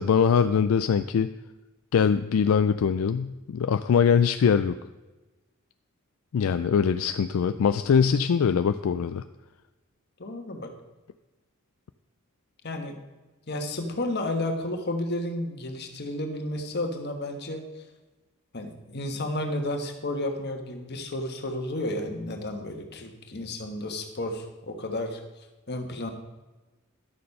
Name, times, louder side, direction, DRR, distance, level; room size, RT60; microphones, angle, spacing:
voice 1, 0.0-1.3 1.9-4.8 6.3-9.2, left 6 dB, 75° left, 10 dB, 0.4 m, -22 dB
voice 2, 10.2-10.7 12.6-13.0 13.5-17.6 18.5-25.2 25.7-26.1, left 1 dB, 50° left, 5 dB, 1.3 m, -32 dB
11.5 x 6.7 x 5.4 m, 1.1 s
head